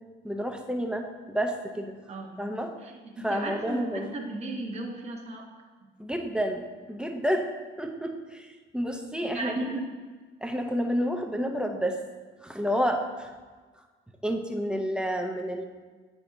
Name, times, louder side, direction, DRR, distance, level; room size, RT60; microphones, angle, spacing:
voice 1, 0.2-2.0 2.4-2.8 3.2-4.1 6.0-7.5 7.8-9.5 10.4-12.0 12.4-13.3 14.2-15.6, equal, 5° right, 3 dB, 0.6 m, -30 dB
voice 2, 2.1-2.4 2.8-5.5 9.3-9.9, right 2 dB, 35° right, -1 dB, 1.0 m, -36 dB
8.2 x 6.0 x 2.7 m, 1.4 s
cardioid pair, 90°, 20 cm